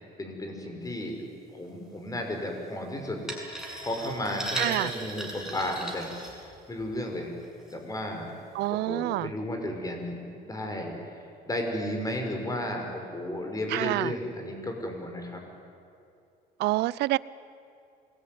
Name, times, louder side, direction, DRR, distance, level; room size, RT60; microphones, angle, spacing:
voice 1, 0.2-1.2 1.5-3.2 3.8-6.1 6.7-7.4 7.7-8.3 8.7-10.9 11.4-15.4, left 1 dB, 20° left, 3 dB, 5.8 m, -33 dB
sound 1, 3.3-6.9 7.4-7.7 8.3-8.4, right 1 dB, 5° right, 6.8 m, -37 dB
voice 2, 4.6-4.9 8.5-9.3 13.7-14.1 16.6-17.2, right 18 dB, 80° right, 20 dB, 0.6 m, -27 dB
27.0 x 21.0 x 9.5 m, 2.5 s
cardioid pair, 110°, 17 cm